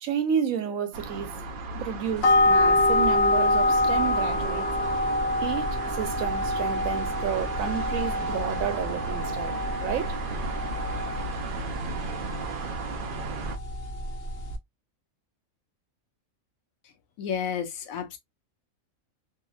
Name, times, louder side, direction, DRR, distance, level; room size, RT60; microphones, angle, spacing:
voice 1, 0.0-1.4 1.7-4.7 5.4-10.2, right 8 dB, 80° right, 1.1 m, -31 dB
sound 1, 0.9-13.6, right 4 dB, 60° right, 0.6 m, -35 dB
sound 2, 2.2-14.6, left 2 dB, 55° left, 0.8 m, -26 dB
voice 2, 17.2-18.2, left 7 dB, 80° left, 1.1 m, -31 dB
2.8 x 2.8 x 2.3 m
omnidirectional pair, 1.4 m